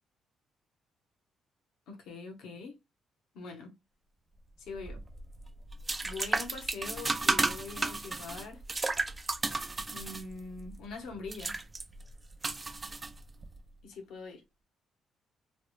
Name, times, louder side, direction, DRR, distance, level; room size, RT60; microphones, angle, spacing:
voice 1, 1.9-2.8 3.3-3.7 4.6-5.0 6.0-8.6 9.9-11.6 13.8-14.4, left 4 dB, 85° left, 0.9 m, -43 dB
sound 1, 4.7-13.6, right 3 dB, 25° right, 0.4 m, -34 dB
3.1 x 2.0 x 3.0 m
cardioid pair, 90°, 0 cm